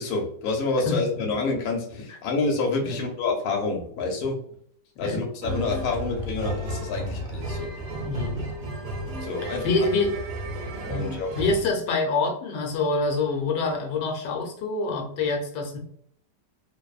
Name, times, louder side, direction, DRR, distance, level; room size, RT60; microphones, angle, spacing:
voice 1, 0.0-4.4 5.0-7.7 9.2-9.9 10.9-11.3, left 3 dB, 70° left, 1 dB, 1.1 m, -28 dB
sound 1, 5.4-11.7, right 1 dB, 70° right, 1.2 m, -33 dB
voice 2, 8.0-8.4 9.4-10.1 10.9-11.1 11.4-15.8, left 3 dB, 90° left, 3 dB, 1.2 m, -26 dB
2.9 x 2.0 x 2.3 m, 0.64 s
omnidirectional pair, 1.8 m